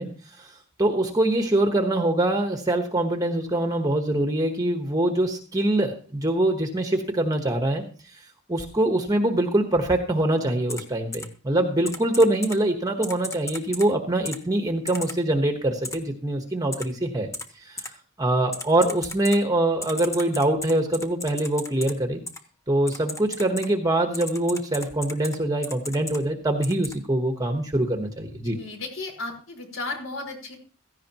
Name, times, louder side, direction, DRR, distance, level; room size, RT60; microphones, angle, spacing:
voice 1, 0.0-17.3 17.6-22.2 22.7-28.6, right 1 dB, 20° right, 4 dB, 1.2 m, -24 dB
Typing, 10.7-10.8 11.1-11.2 11.8-12.6 13.0-13.9 14.2-14.4 14.9-15.1 15.8-15.9 16.7-16.8 17.3-17.4 17.8-17.9 18.5-19.4 19.8-21.9 22.3-22.4 22.9-23.7 24.1-25.4 25.6-26.2 26.6-26.9, left 2 dB, 15° left, 1.3 m, -34 dB
voice 2, 28.5-30.6, left 3 dB, 65° left, 2 dB, 4.7 m, -34 dB
16.5 x 15.0 x 3.0 m, 0.38 s
head